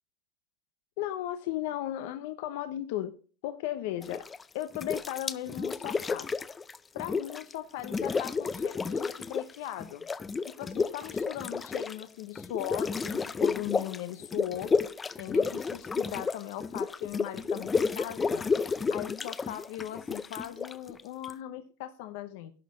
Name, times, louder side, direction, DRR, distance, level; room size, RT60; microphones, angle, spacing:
voice 1, 1.0-3.2 3.4-4.2 4.5-6.3 6.9-10.0 10.4-14.7 15.2-18.4 18.9-22.5, left 13 dB, 70° left, 9 dB, 0.8 m, -37 dB
sound 1, 4.0-4.4 4.7-7.5 7.8-9.5 9.8-21.3, left 4 dB, 15° left, 0.4 m, -31 dB
11.0 x 4.3 x 8.0 m, 0.41 s
supercardioid pair, 135°, 0 cm